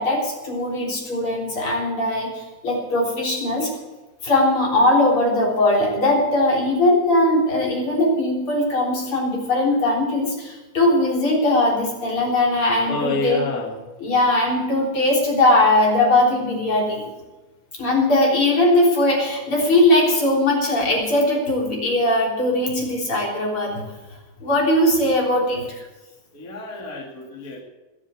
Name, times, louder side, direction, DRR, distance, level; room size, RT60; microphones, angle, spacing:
voice 1, 0.0-3.7 4.2-13.4 14.0-17.0 17.8-23.8 24.4-25.9, left 1 dB, 45° left, -2 dB, 4.4 m, -20 dB
voice 2, 12.9-13.8 26.3-27.6, left 2 dB, 30° left, -4 dB, 2.8 m, -28 dB
21.0 x 7.4 x 7.8 m, 1.1 s
omnidirectional pair, 3.3 m